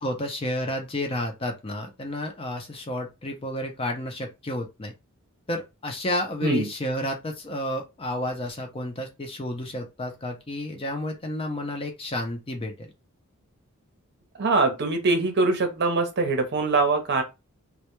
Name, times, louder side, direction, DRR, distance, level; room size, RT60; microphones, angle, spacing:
voice 1, 0.0-4.9 5.5-12.9, left 1 dB, 25° left, 0.4 m, -31 dB
voice 2, 14.4-17.2, right 3 dB, 50° right, 0.6 m, -23 dB
2.1 x 2.1 x 2.9 m
head